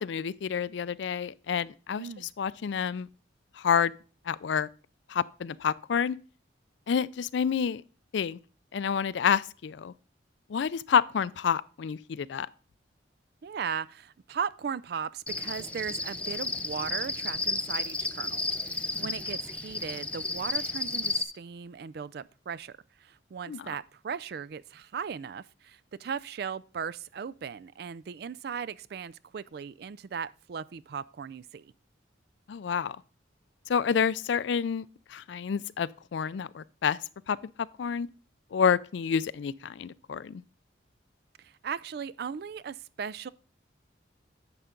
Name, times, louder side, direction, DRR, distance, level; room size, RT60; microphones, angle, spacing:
voice 1, 0.0-3.1 3.6-3.9 4.3-4.7 5.1-6.2 6.9-7.8 8.1-8.4 8.7-9.9 10.5-12.5 23.5-23.7 32.5-33.0 33.7-37.0 37.3-37.4 37.8-38.1 38.5-40.4, left 7 dB, 70° left, 0.4 m, -28 dB
voice 2, 2.0-2.3 13.4-22.7 23.0-31.7 41.4-43.3, right 7 dB, 55° right, 0.3 m, -37 dB
Cricket, 15.3-21.2, left 2 dB, 5° left, 0.5 m, -32 dB
11.0 x 6.9 x 3.8 m
head